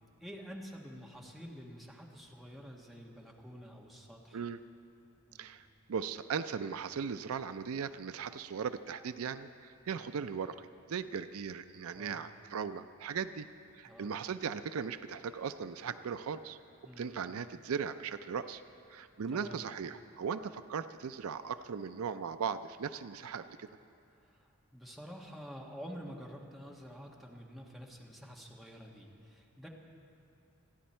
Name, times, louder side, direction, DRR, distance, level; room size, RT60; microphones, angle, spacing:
voice 1, 0.2-4.4 5.2-5.5 9.9-10.2 11.9-12.3 13.8-14.1 16.8-17.1 19.3-19.6 24.3-29.7, equal, ahead, -2 dB, 1.5 m, -49 dB
voice 2, 5.4-13.5 13.7-16.6 17.0-18.6 18.9-23.7, right 6 dB, 75° right, 11 dB, 0.4 m, -38 dB
28.5 x 10.5 x 4.4 m, 2.6 s
head